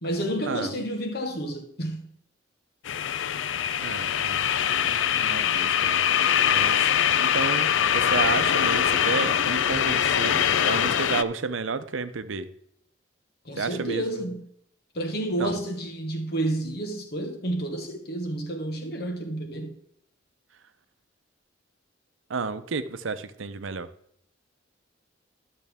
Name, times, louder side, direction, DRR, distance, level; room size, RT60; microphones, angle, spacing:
voice 1, 0.0-2.0 13.4-14.4 14.9-19.7, right 1 dB, 55° left, 1.4 m, -30 dB
sound 1, 2.9-11.2, left 9 dB, 80° left, 0.4 m, -23 dB
voice 2, 3.8-4.4 4.8-6.0 6.4-6.9 7.2-12.5 13.5-14.3 15.4-15.6 22.3-23.9, right 4 dB, 90° right, 0.7 m, -31 dB
12.5 x 6.7 x 3.5 m
head